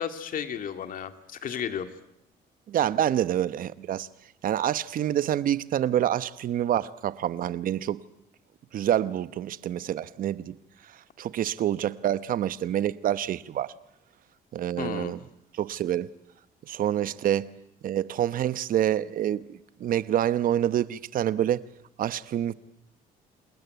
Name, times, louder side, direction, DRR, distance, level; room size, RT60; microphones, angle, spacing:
voice 1, 0.0-1.9 14.8-15.2, left 8 dB, 55° left, 2.1 m, -33 dB
voice 2, 2.7-4.1 4.4-8.0 8.7-10.6 11.2-13.7 14.5-15.2 15.5-16.1 16.7-17.5 17.8-21.6 22.0-22.5, right 11 dB, 55° right, 0.9 m, -27 dB
28.0 x 20.0 x 9.2 m
cardioid pair, 110°, 17 cm